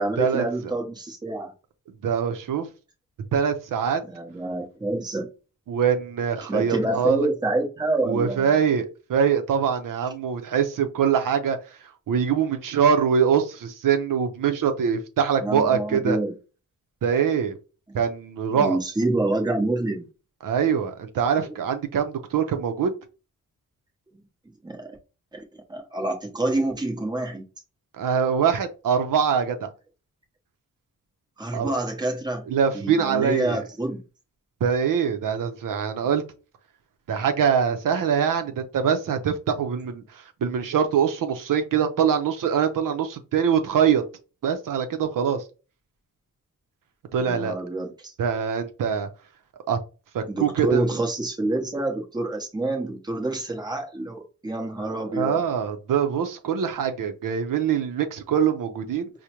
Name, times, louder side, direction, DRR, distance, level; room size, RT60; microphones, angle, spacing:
voice 1, 0.0-1.5 4.0-5.3 6.5-8.6 15.4-16.3 17.9-18.0 18.5-20.1 21.4-21.5 24.6-25.0 25.3-27.4 31.4-32.4 32.7-34.0 47.2-48.1 50.3-55.5, right 2 dB, 15° right, 0.8 m, -27 dB
voice 2, 2.0-2.7 3.3-4.0 5.7-7.3 8.1-11.6 12.1-16.2 17.0-17.6 17.9-18.8 20.4-22.9 28.0-29.7 31.5-31.7 32.5-33.6 34.6-36.2 37.1-44.0 44.4-45.4 47.1-47.5 48.2-49.1 49.7-49.8 50.1-50.9 54.8-59.1, right 7 dB, 75° right, 0.6 m, -23 dB
4.9 x 2.1 x 2.9 m
wide cardioid pair, 120°, 33 cm